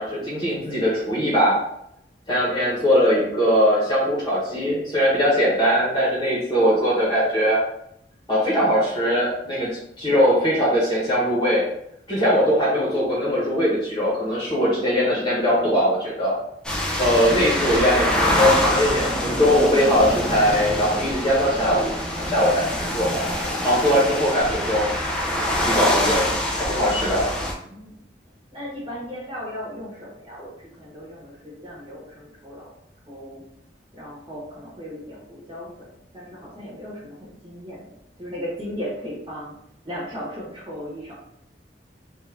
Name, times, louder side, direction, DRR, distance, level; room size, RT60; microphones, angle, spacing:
voice 1, 0.0-1.6 2.3-7.6 8.3-9.7 10.0-11.6 12.1-16.3 17.0-21.9 22.2-23.2 23.6-24.9 25.7-26.3 26.6-27.2, equal, 25° left, -6 dB, 1.1 m, -20 dB
sound 1, 16.6-27.5, left 1 dB, 5° left, 0.5 m, -25 dB
voice 2, 27.5-28.0 28.5-32.7 33.1-33.4 33.9-35.9 36.1-39.5 39.8-41.1, equal, 30° right, -6 dB, 1.2 m, -36 dB
3.7 x 2.5 x 3.4 m, 0.74 s
head